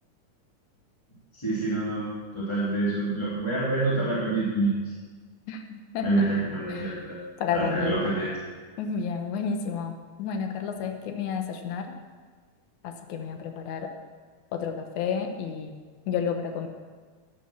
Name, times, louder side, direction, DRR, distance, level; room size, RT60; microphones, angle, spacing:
voice 1, 1.3-4.7 6.0-7.2 7.5-8.3, right 2 dB, 10° left, -8 dB, 3.0 m, -27 dB
voice 2, 5.5-6.1 6.7-7.0 7.4-8.0 8.8-11.9 12.8-13.9 14.5-16.7, left 6 dB, 75° left, 5 dB, 2.5 m, -31 dB
13.0 x 11.0 x 6.3 m, 1.5 s
omnidirectional pair, 3.5 m